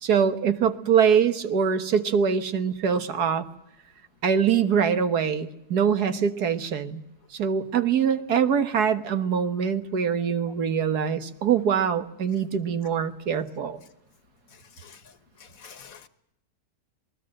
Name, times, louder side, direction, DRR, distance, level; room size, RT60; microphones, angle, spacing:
voice 1, 0.0-3.5 4.2-7.0 7.3-13.8, right 7 dB, 80° right, 1.9 m, -23 dB
voice 2, 15.4-16.1, left 6 dB, 65° left, 1.6 m, -47 dB
27.0 x 20.0 x 7.7 m
omnidirectional pair, 1.7 m